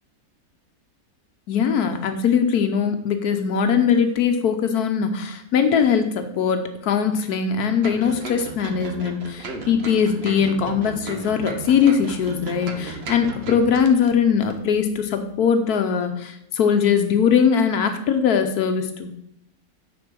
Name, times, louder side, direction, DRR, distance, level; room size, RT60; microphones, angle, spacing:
voice 1, 1.5-19.1, left 7 dB, 80° left, 7 dB, 1.3 m, -21 dB
sound 1, 7.8-14.1 14.4-14.5, right 3 dB, 45° right, 1.1 m, -35 dB
9.8 x 4.4 x 6.1 m, 0.79 s
omnidirectional pair, 1.6 m